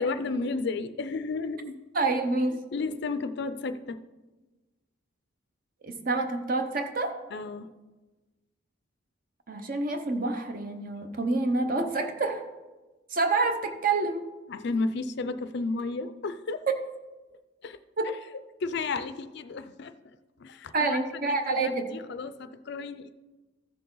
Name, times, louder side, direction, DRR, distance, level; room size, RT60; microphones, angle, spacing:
voice 1, 0.0-1.8 2.7-4.0 7.3-7.7 14.5-16.6 17.6-17.8 18.6-23.1, left 3 dB, 55° left, 12 dB, 0.4 m, -33 dB
voice 2, 1.9-2.6 5.8-7.1 9.5-12.4 13.1-14.2 18.0-18.1 20.7-21.9, right 3 dB, 45° right, 7 dB, 0.8 m, -27 dB
14.0 x 6.7 x 3.9 m, 1.2 s
head